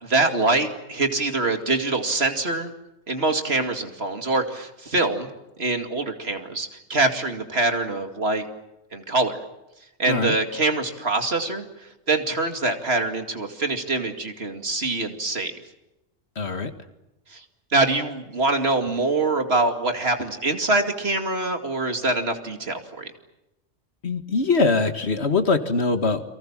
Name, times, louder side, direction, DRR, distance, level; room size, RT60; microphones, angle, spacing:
voice 1, 0.0-2.7 3.1-5.3 5.6-8.5 8.9-9.4 10.0-11.7 12.1-15.5 17.3-17.4 17.7-23.1, right 2 dB, 55° right, 6 dB, 2.7 m, -24 dB
voice 2, 16.4-16.7 24.0-26.2, left 3 dB, 55° left, 9 dB, 2.0 m, -22 dB
29.5 x 24.0 x 7.4 m, 0.93 s
omnidirectional pair, 1.3 m